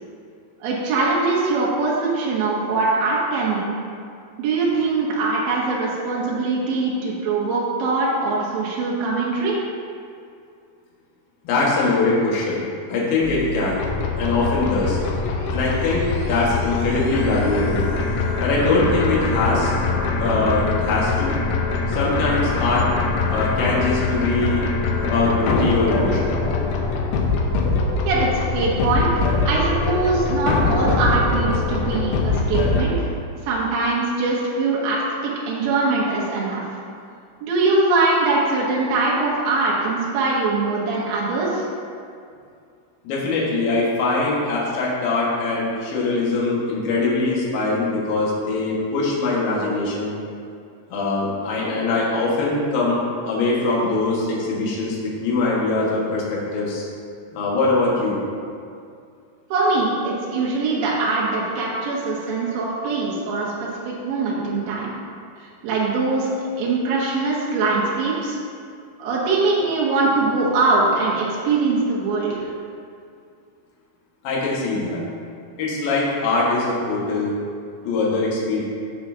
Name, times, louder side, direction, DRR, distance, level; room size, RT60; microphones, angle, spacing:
voice 1, 0.6-3.7 4.4-9.5 28.1-33.1 33.4-36.6 37.4-41.7 59.5-64.9 65.4-68.4 69.0-72.4, right 3 dB, 75° right, -5 dB, 2.1 m, -22 dB
voice 2, 11.4-13.8 14.2-15.0 15.5-17.8 18.4-19.7 20.2-21.4 21.9-22.9 23.3-24.7 25.0-26.3 43.0-50.2 50.9-56.9 57.3-58.2 74.2-75.0 75.6-77.3 77.8-78.6, left 3 dB, 60° left, -5 dB, 2.8 m, -22 dB
sound 1, 13.2-32.8, left 3 dB, 90° left, 2.2 m, -23 dB
14.0 x 5.5 x 2.7 m, 2.4 s
omnidirectional pair, 5.5 m